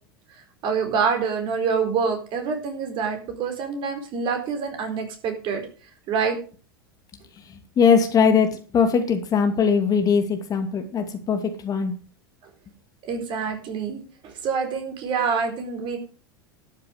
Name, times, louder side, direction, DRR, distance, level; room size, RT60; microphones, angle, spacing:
voice 1, 0.6-5.6 6.1-6.4 13.1-16.0, right 5 dB, 45° right, 5 dB, 4.3 m, -26 dB
voice 2, 7.8-11.9, left 6 dB, 30° left, 6 dB, 2.5 m, -20 dB
12.5 x 7.4 x 6.6 m, 0.37 s
figure-of-eight pair, 85°, 12 cm